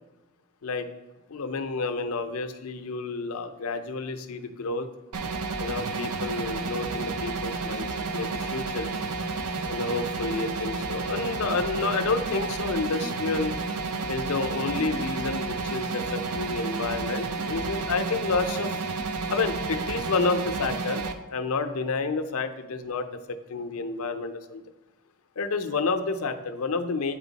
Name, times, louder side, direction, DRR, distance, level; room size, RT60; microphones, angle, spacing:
voice 1, 1.3-4.9 5.6-7.9 8.1-8.9 9.6-13.5 14.1-18.7 19.3-21.0 21.3-24.6 25.4-27.2, left 4 dB, 70° left, 7 dB, 0.6 m, -30 dB
sound 1, 5.1-21.1, right 4 dB, 85° right, 0.6 m, -31 dB
8.7 x 4.4 x 4.0 m, 1.1 s
head